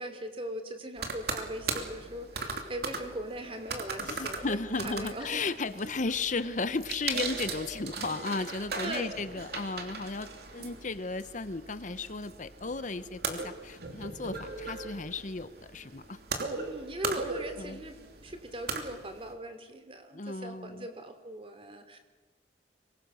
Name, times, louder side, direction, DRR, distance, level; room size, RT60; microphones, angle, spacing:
voice 1, 0.0-5.4 8.8-9.1 16.6-18.0 18.2-22.0, right 1 dB, 30° right, 7 dB, 3.0 m, -40 dB
sound 1, 1.0-19.3, right 4 dB, 65° right, 2.9 m, -39 dB
voice 2, 4.0-16.2 17.6-17.8 20.1-20.9, left 3 dB, 45° left, 13 dB, 0.8 m, -35 dB
26.0 x 23.0 x 6.4 m, 1.3 s
head